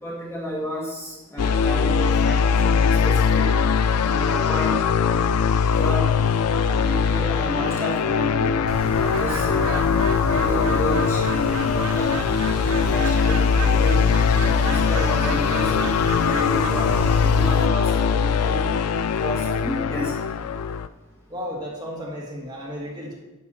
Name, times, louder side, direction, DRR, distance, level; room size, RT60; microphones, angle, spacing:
voice 1, 0.0-3.4 4.0-4.8 5.0-5.2 5.8-6.1 6.5-8.6 9.0-9.9 10.3-12.1 12.7-14.0 14.4-15.9 16.2-18.7 19.2-20.1, equal, 10° left, -3 dB, 1.3 m, -31 dB
sound 1, 1.4-20.9, left 6 dB, 90° left, 0.4 m, -21 dB
Bird, 8.7-17.7, right 4 dB, 65° right, 0.5 m, -32 dB
voice 2, 21.3-23.1, equal, 20° right, -3 dB, 1.8 m, -33 dB
10.5 x 6.2 x 4.2 m, 1.1 s
head